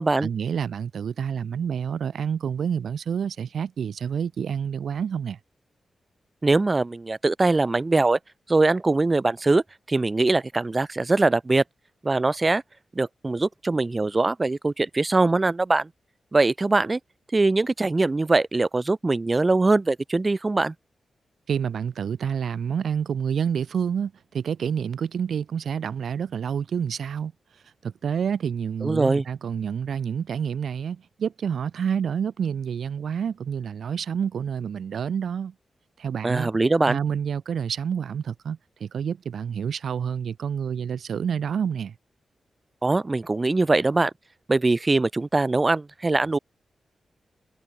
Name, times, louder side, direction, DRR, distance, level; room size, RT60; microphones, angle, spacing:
voice 1, 0.2-5.4 21.5-27.3 27.8-35.5 36.0-36.5 36.9-41.9, right 7 dB, 75° right, 4.2 m, -28 dB
voice 2, 6.4-8.2 8.5-9.6 9.9-11.6 12.0-12.6 13.0-15.9 16.3-17.0 17.3-20.7 28.8-29.2 36.2-37.0 42.8-44.1 44.5-46.4, right 3 dB, 25° right, 2.2 m, -22 dB
wide cardioid pair, 140°, 0 cm